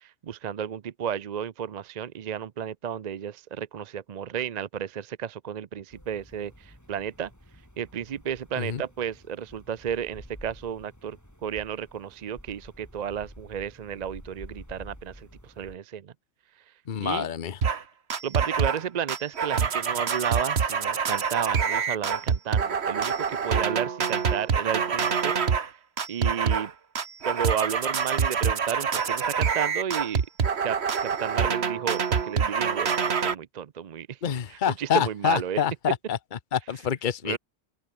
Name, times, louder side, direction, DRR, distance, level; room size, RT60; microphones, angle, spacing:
voice 1, 0.0-7.3 7.8-16.1 17.0-17.3 18.2-25.3 26.1-26.7 27.2-30.2 30.6-34.2 34.5-35.6 37.2-37.4, right 8 dB, 50° right, 0.6 m, -33 dB
sound 1, 5.9-15.8, equal, 15° left, 8.1 m, -50 dB
voice 2, 16.9-17.6 34.2-36.2 36.5-37.4, left 9 dB, 50° left, 1.0 m, -27 dB
sound 2, 17.6-17.8 18.1-18.8 19.1-25.7 26.0-26.7 27.0-33.4, right 6 dB, 70° right, 1.5 m, -26 dB
omnidirectional pair, 1.1 m